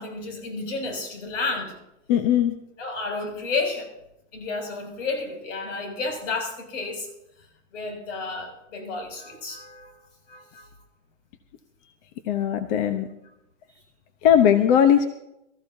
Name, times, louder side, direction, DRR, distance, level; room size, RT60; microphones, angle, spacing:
voice 1, 0.0-1.7 2.8-3.9 4.3-7.1 7.7-9.9 10.3-10.7, left 3 dB, 70° left, 3 dB, 6.7 m, -31 dB
voice 2, 2.1-2.5 12.3-13.1 14.2-15.1, left 9 dB, 35° left, 9 dB, 0.9 m, -19 dB
23.5 x 14.0 x 2.7 m, 0.84 s
hypercardioid pair, 150°, 39 cm